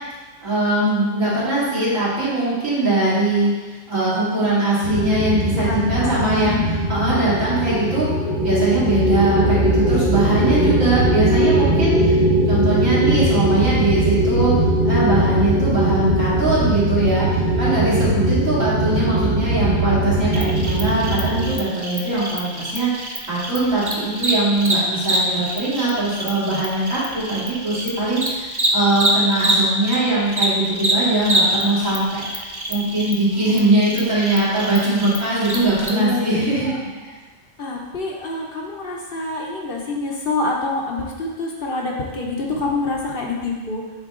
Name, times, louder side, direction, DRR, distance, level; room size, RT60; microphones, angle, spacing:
voice 1, 0.4-8.1 8.4-12.2 12.5-14.5 14.8-36.7, right 2 dB, 90° right, -10 dB, 2.8 m, -21 dB
sound 1, 4.8-21.5, right 1 dB, 45° right, 1.3 m, -20 dB
voice 2, 5.5-6.9 35.9-37.1 37.6-43.9, left 3 dB, 50° left, -1 dB, 0.9 m, -26 dB
Cricket, 20.3-30.0 30.3-35.9, right 1 dB, 25° right, 0.6 m, -25 dB
8.3 x 3.7 x 3.7 m, 1.3 s
omnidirectional pair, 1.3 m